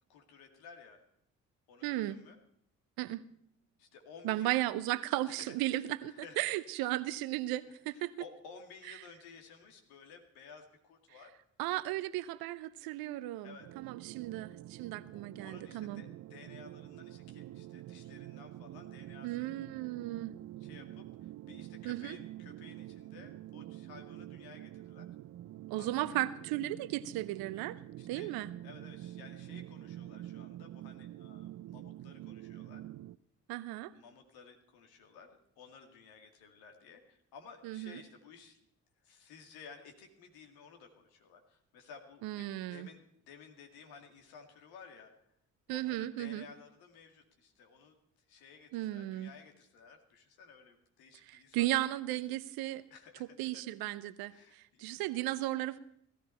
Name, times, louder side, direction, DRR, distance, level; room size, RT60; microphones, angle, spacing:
voice 1, 0.1-1.0 1.7-2.4 3.8-4.5 5.7-6.4 7.9-11.3 13.4-13.9 15.1-19.5 20.6-25.1 25.8-26.1 28.0-28.3 28.6-32.8 33.9-38.6 39.0-45.1 45.7-47.9 48.3-51.7 52.9-53.6 54.3-55.0, left 5 dB, 70° left, 4 dB, 2.3 m, -55 dB
voice 2, 1.8-2.2 3.0-3.2 4.2-8.1 8.9-9.0 11.6-16.0 19.2-20.3 21.8-22.2 25.7-27.8 28.1-28.5 33.5-33.9 37.6-38.0 42.2-42.9 45.7-46.5 48.7-49.3 51.2-52.8 53.2-55.8, right 16 dB, 70° right, 15 dB, 0.9 m, -35 dB
sound 1, 13.6-33.2, right 14 dB, 50° right, 0.5 m, -47 dB
17.5 x 14.0 x 4.5 m, 0.70 s
figure-of-eight pair, 40°, 38 cm